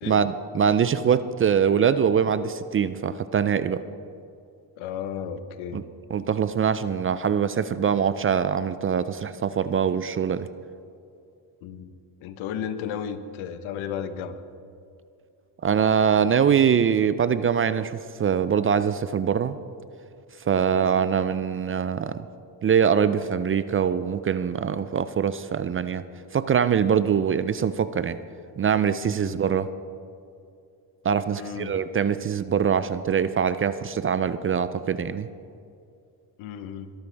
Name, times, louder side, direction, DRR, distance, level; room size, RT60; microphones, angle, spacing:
voice 1, 0.0-3.8 5.7-5.8 6.1-10.5 15.6-19.6 20.5-22.2 22.6-26.0 26.3-28.2 28.6-29.7 31.0-35.3, right 7 dB, 30° right, 13 dB, 0.4 m, -23 dB
voice 2, 4.8-5.8 11.6-11.9 12.2-14.4 20.7-20.9 29.2-29.4 31.3-31.8 36.4-36.9, left 8 dB, 85° left, 10 dB, 1.1 m, -34 dB
22.0 x 12.5 x 3.4 m, 2.4 s
cardioid pair, 110°, 46 cm